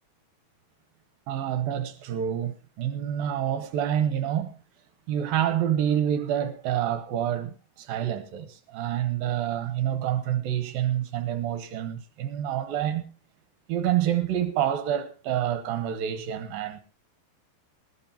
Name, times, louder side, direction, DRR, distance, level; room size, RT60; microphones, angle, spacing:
voice 1, 1.3-4.6 5.1-13.0 13.7-16.8, right 10 dB, 70° right, 2.7 m, -27 dB
20.0 x 14.5 x 2.9 m
omnidirectional pair, 4.9 m